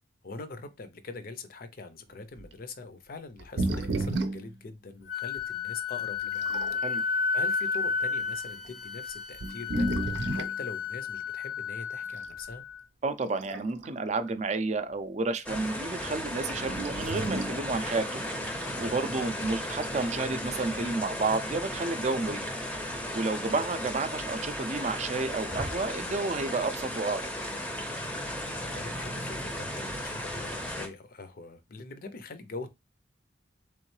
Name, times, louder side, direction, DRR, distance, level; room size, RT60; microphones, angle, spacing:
voice 1, 0.2-6.5 7.1-9.9 10.3-12.6 19.3-19.5 28.6-32.7, left 3 dB, 50° left, 0.5 m, -43 dB
sound 1, 2.4-2.5 3.4-4.5 5.4-5.5 6.2-6.8 7.5-7.8 8.6-8.7 9.3-10.6 12.2-12.4 13.2-13.9 14.3-14.4 16.7-17.6 19.7-20.2, right 2 dB, 85° right, 0.6 m, -32 dB
Wind instrument woodwind instrument, 5.1-12.8, left 5 dB, 85° left, 0.9 m, -32 dB
voice 2, 13.0-18.3 18.8-27.3, right 3 dB, 40° right, 0.4 m, -31 dB
sound 2, 15.4-30.9, equal, 5° left, 0.6 m, -35 dB
3.6 x 3.1 x 3.1 m
head